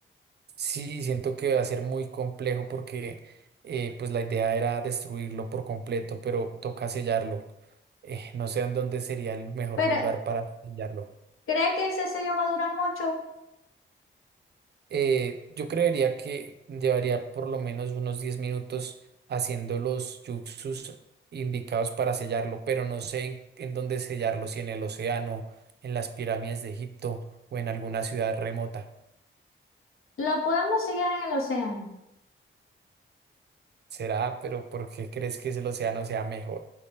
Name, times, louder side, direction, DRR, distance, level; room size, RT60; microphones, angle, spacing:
voice 1, 0.6-3.3 3.6-7.4 8.0-11.1 14.9-18.9 19.3-21.0 21.3-25.4 25.8-27.2 27.5-28.8 33.9-36.6, right 6 dB, 55° right, 8 dB, 0.4 m, -30 dB
voice 2, 11.5-13.2 30.2-31.9, left 3 dB, 85° left, 0 dB, 0.9 m, -27 dB
4.6 x 2.7 x 3.4 m, 0.86 s
cardioid pair, 85°, 21 cm